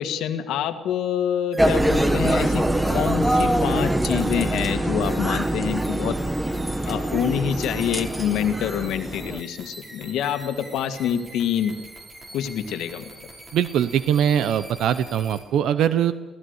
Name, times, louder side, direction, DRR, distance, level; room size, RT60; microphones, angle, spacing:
voice 1, 0.0-6.2 6.9-11.8 12.3-13.1, left 9 dB, 85° left, 8 dB, 1.7 m, -26 dB
sound 1, 1.5-15.4, right 1 dB, 30° right, 5.5 m, -44 dB
sound 2, 1.6-9.4, right 1 dB, 10° right, 1.2 m, -24 dB
voice 2, 13.5-16.1, right 9 dB, 80° right, 13 dB, 0.8 m, -21 dB
23.5 x 16.0 x 8.1 m, 1.2 s
cardioid pair, 90°, 0 cm